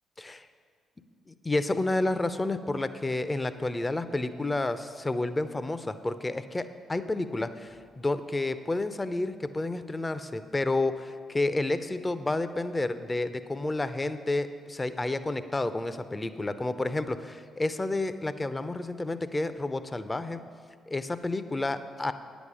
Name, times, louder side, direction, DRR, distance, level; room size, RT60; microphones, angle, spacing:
voice 1, 1.3-20.4 20.9-22.1, left 2 dB, 25° left, 12 dB, 0.6 m, -30 dB
9.5 x 7.1 x 6.2 m, 2.1 s
hypercardioid pair, 45°, 0 cm